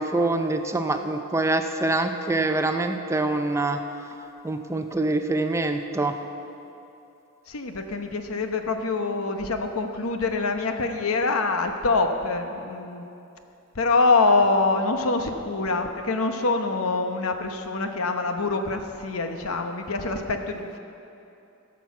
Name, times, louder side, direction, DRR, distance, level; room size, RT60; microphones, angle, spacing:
voice 1, 0.0-3.8 4.4-6.1, right 2 dB, 15° right, 6 dB, 0.5 m, -25 dB
voice 2, 7.5-13.0 13.7-20.8, left 3 dB, 75° left, 6 dB, 0.9 m, -25 dB
15.5 x 6.2 x 7.1 m, 2.8 s
head